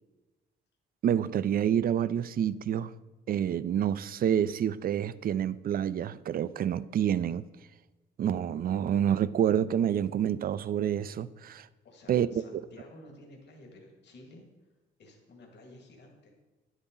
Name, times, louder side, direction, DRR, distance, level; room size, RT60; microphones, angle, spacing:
voice 1, 1.0-2.9 3.3-7.4 8.2-11.7 12.1-12.3, right 9 dB, 50° right, 0.4 m, -28 dB
voice 2, 11.8-14.5 15.0-16.3, left 1 dB, 60° left, 2.0 m, -52 dB
9.9 x 8.0 x 3.8 m
cardioid pair, 90°, 20 cm